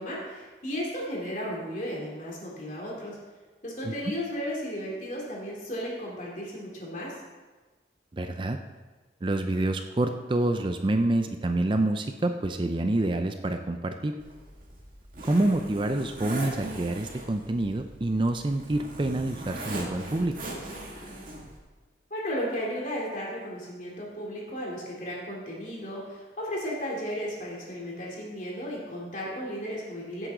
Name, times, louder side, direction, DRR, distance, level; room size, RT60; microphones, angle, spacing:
voice 1, 0.0-3.2 3.6-7.1 22.1-30.3, equal, 45° left, -4 dB, 3.2 m, -34 dB
voice 2, 8.1-8.6 9.2-14.1 15.2-20.3, right 2 dB, 25° right, 6 dB, 0.4 m, -27 dB
Zipper (clothing), 14.2-21.6, right 1 dB, 50° right, 2.2 m, -40 dB
16.0 x 7.9 x 3.8 m, 1.3 s
head